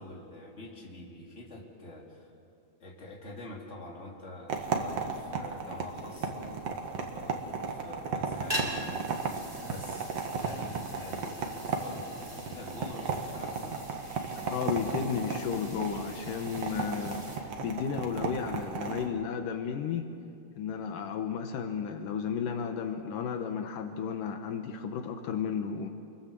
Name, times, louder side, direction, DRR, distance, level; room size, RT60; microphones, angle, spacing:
voice 1, 0.0-2.3 2.8-10.1 10.4-13.8, left 1 dB, 20° left, -2 dB, 3.6 m, -46 dB
sound 1, 4.5-19.1, right 5 dB, 50° right, 2.7 m, -35 dB
sound 2, 8.3-17.4, equal, 10° right, 3.3 m, -43 dB
voice 2, 14.3-20.1 20.5-25.9, left 7 dB, 75° left, 6 dB, 2.7 m, -33 dB
29.0 x 22.0 x 7.6 m, 2.6 s
omnidirectional pair, 3.9 m